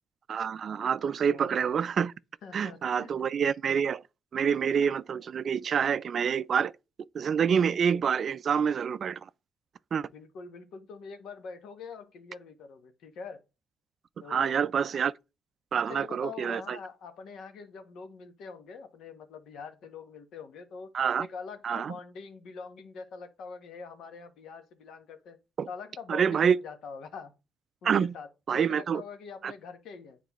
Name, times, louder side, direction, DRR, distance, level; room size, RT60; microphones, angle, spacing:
voice 1, 0.3-2.1 2.5-4.0 4.3-6.7 7.1-9.2 9.9-10.1 14.3-15.1 15.7-16.8 20.9-21.3 21.6-21.9 25.6-25.7 26.1-26.6 27.8-28.1 28.5-29.0 29.4-29.5, right 7 dB, 50° right, 0.3 m, -27 dB
voice 2, 1.2-1.7 2.4-3.3 10.1-13.4 14.2-14.6 15.7-20.9 21.2-25.4 25.7-27.3 27.8-30.2, left 5 dB, 75° left, 1.1 m, -44 dB
9.2 x 4.2 x 3.0 m
cardioid pair, 110°, 0 cm